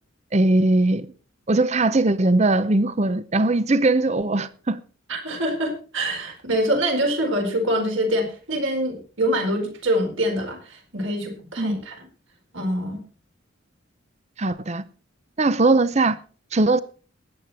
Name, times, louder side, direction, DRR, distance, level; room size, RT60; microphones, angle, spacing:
voice 1, 0.3-1.1 1.5-4.8 11.6-11.8 14.4-14.8 15.4-16.2 16.5-16.8, right 2 dB, 30° right, 0.6 m, -20 dB
voice 2, 5.1-12.1 12.5-13.0, equal, 70° right, 4.5 m, -25 dB
19.0 x 8.3 x 4.3 m
head